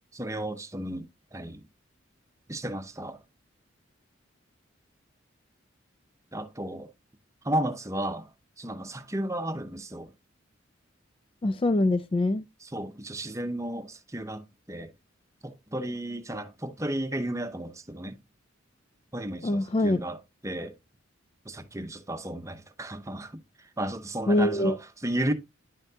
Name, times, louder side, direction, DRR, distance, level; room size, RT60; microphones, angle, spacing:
voice 1, 0.1-1.6 2.5-3.2 6.3-6.9 7.4-8.3 8.6-10.1 12.6-14.9 15.4-18.2 19.1-20.2 20.4-20.7 21.4-23.4 23.8-25.3, right 1 dB, 15° right, 0.7 m, -33 dB
voice 2, 11.4-12.4 19.4-20.0 24.3-24.8, left 1 dB, 25° left, 0.3 m, -24 dB
10.0 x 5.7 x 2.8 m
head